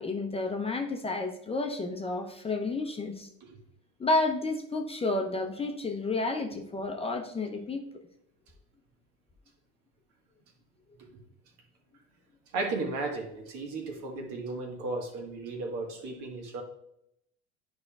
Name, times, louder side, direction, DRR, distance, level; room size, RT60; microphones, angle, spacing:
voice 1, 0.0-3.3 4.0-7.8, left 2 dB, 15° left, 4 dB, 0.7 m, -31 dB
voice 2, 12.5-16.6, right 3 dB, 60° right, 3 dB, 1.6 m, -35 dB
9.6 x 5.2 x 2.4 m, 0.78 s
hypercardioid pair, 85°, 34 cm